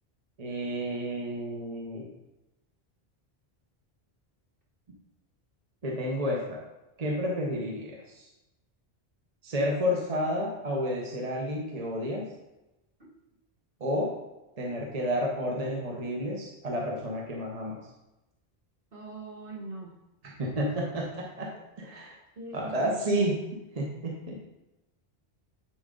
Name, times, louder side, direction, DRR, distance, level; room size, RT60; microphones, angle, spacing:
voice 1, 0.4-2.1 5.8-6.6 7.0-8.3 9.4-12.3 13.8-14.1 14.6-17.8 20.4-22.2 22.5-23.4 23.7-24.4, equal, 40° right, -2 dB, 1.0 m, -31 dB
voice 2, 18.9-19.9 22.4-23.0, right 3 dB, 60° right, -3 dB, 1.8 m, -41 dB
10.0 x 3.8 x 3.8 m, 0.98 s
omnidirectional pair, 1.1 m